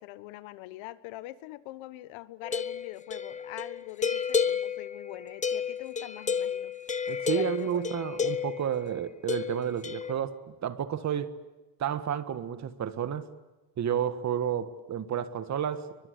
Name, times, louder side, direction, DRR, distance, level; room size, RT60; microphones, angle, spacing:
voice 1, 0.0-6.7 7.3-8.0, left 16 dB, 65° left, 1.5 m, -43 dB
sound 1, 2.4-8.7 9.3-10.1, left 6 dB, 15° left, 0.9 m, -31 dB
voice 2, 7.1-11.4 11.8-13.3 13.8-15.9, right 9 dB, 35° right, 1.7 m, -31 dB
29.5 x 24.0 x 8.3 m
cardioid pair, 150°, 50 cm